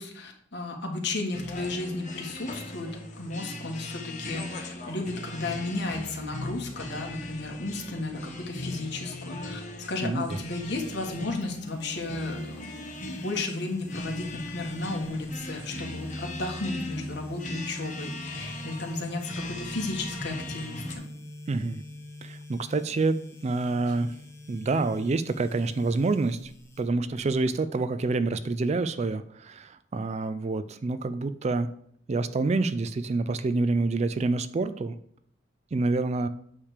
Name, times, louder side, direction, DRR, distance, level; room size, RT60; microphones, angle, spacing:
voice 1, 0.0-9.6 9.9-21.1 23.8-23.9, left 2 dB, 60° left, 1 dB, 1.5 m, -34 dB
sound 1, 1.3-20.9, left 1 dB, 40° left, 1.1 m, -39 dB
voice 2, 10.0-10.4 21.5-21.8 22.2-24.1 24.5-26.5 26.8-31.7 32.1-35.0 35.7-36.3, right 3 dB, 35° right, 13 dB, 0.4 m, -27 dB
sound 2, 11.4-27.4, left 1 dB, 15° left, 0.9 m, -44 dB
8.6 x 3.4 x 6.6 m, 0.67 s
head